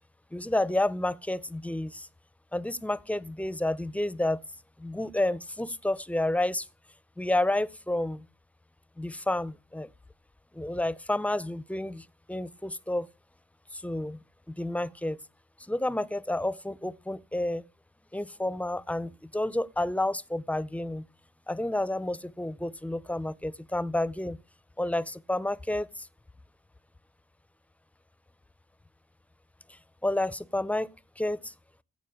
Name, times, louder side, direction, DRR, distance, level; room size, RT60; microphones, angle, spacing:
voice 1, 0.3-2.1 2.5-4.4 4.8-6.7 7.2-8.3 9.0-9.9 10.5-13.1 13.7-14.2 14.5-15.2 15.6-17.6 18.1-21.1 21.5-24.4 24.8-26.1 29.7-31.5, left 1 dB, 5° left, 0.5 m, -30 dB
15.5 x 5.3 x 8.4 m
cardioid pair, 90°, 20 cm